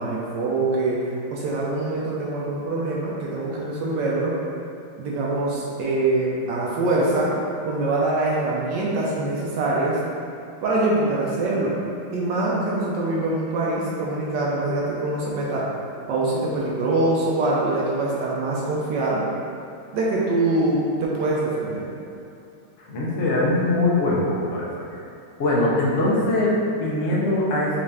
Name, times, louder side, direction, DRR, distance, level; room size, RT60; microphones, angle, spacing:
voice 1, 0.0-4.4 5.0-7.3 7.6-10.0 10.6-11.7 12.1-15.6 16.1-19.2 19.9-21.9, right 2 dB, 70° right, -5 dB, 1.1 m, -24 dB
voice 2, 22.9-24.8 25.4-27.8, left 2 dB, 80° left, -6 dB, 0.6 m, -22 dB
5.3 x 2.5 x 3.4 m, 2.6 s
omnidirectional pair, 2.3 m